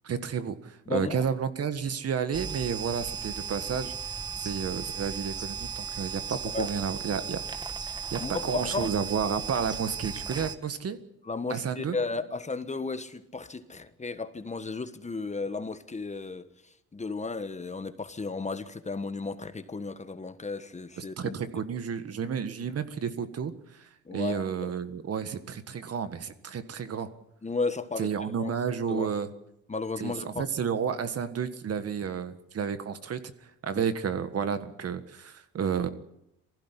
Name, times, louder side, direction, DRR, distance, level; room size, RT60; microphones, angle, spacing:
voice 1, 0.0-3.9 4.4-7.7 8.1-11.0 11.5-12.0 21.0-27.1 28.0-29.3 30.0-33.2 33.6-35.9, right 7 dB, 55° right, 1.7 m, -31 dB
voice 2, 0.9-1.2 6.5-6.7 8.2-8.9 11.3-16.5 16.9-21.4 24.1-24.7 27.4-28.1 28.4-28.5 28.9-29.1 29.7-30.4 33.7-33.8, left 4 dB, 25° left, 1.4 m, -34 dB
sound 1, 2.3-10.6, right 6 dB, 15° right, 1.5 m, -36 dB
19.5 x 15.5 x 10.0 m
cardioid pair, 90°, 30 cm